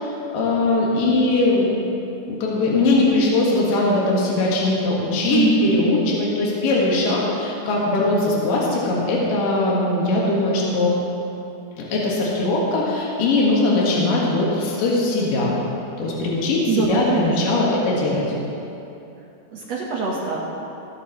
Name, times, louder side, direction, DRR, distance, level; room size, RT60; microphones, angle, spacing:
voice 1, 0.0-1.7 2.3-11.0 11.8-15.5 16.0-18.3, left 2 dB, 70° left, -4 dB, 3.2 m, -20 dB
voice 2, 5.2-6.0 16.7-17.6 19.5-20.4, right 5 dB, 65° right, -3 dB, 1.8 m, -23 dB
22.5 x 8.8 x 3.1 m, 2.8 s
omnidirectional pair, 4.2 m